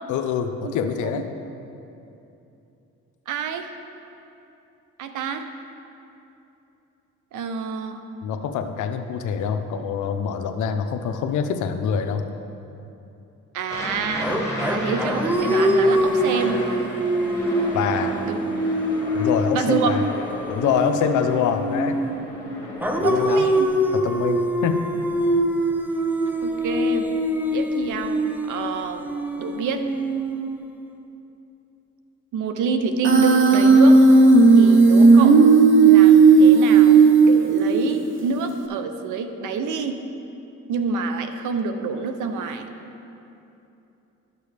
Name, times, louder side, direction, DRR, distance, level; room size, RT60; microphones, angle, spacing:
voice 1, 0.1-1.3 8.2-12.2 17.7-18.2 19.1-20.0 20.5-22.0 23.0-23.5 23.9-24.8, left 7 dB, 75° left, 7 dB, 0.7 m, -25 dB
voice 2, 3.3-3.7 5.0-5.5 7.3-8.0 13.5-14.4 14.7-16.6 18.3-18.6 19.5-19.9 23.0-23.7 26.4-27.1 27.5-29.1 29.4-29.8 32.3-34.0 34.6-35.4 35.9-40.0 40.7-42.7, right 5 dB, 80° right, 8 dB, 0.7 m, -27 dB
Aircraft, 13.7-23.2, equal, 10° left, 1.9 m, -33 dB
sound 1, 14.2-22.3 22.8-30.9, equal, 5° right, 0.6 m, -24 dB
Human voice, 33.0-38.0, right 4 dB, 40° right, 0.8 m, -13 dB
11.5 x 6.8 x 3.3 m, 2.8 s
cardioid pair, 90°, 30 cm